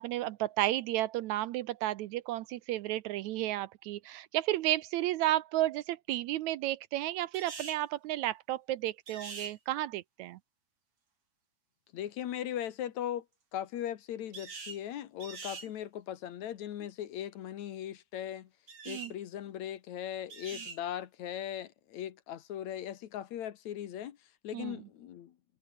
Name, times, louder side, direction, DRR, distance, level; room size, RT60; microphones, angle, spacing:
voice 1, 0.0-10.4 18.9-19.1 24.5-24.7, right 15 dB, 75° right, 1.9 m, -32 dB
sound 1, 7.3-7.8 9.1-9.5 14.3-14.8 15.2-15.7 18.7-19.1 20.3-20.8, right 4 dB, 45° right, 4.9 m, -43 dB
voice 2, 11.9-13.3 13.5-18.5 18.9-24.2 24.4-25.3, left 11 dB, 70° left, 2.5 m, -39 dB
omnidirectional pair, 3.6 m